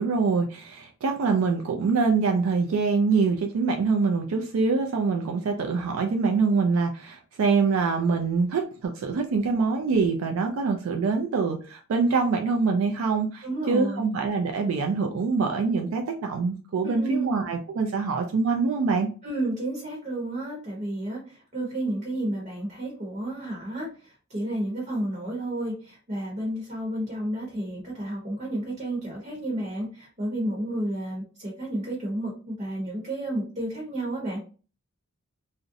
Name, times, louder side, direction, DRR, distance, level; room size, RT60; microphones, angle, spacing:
voice 1, 0.0-19.1, right 4 dB, 70° right, 0.3 m, -24 dB
voice 2, 13.4-14.1 16.8-17.4 19.2-34.4, right 1 dB, 35° right, 0.8 m, -31 dB
2.5 x 2.0 x 2.5 m
head